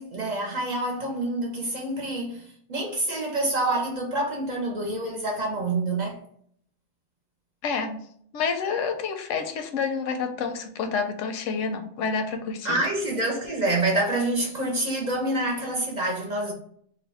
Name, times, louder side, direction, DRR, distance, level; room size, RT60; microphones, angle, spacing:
voice 1, 0.0-6.2 12.6-16.5, right 2 dB, 45° right, 0.6 m, -27 dB
voice 2, 7.6-8.0 8.3-12.8, left 5 dB, 90° left, 0.9 m, -28 dB
2.5 x 2.2 x 4.0 m
omnidirectional pair, 1.2 m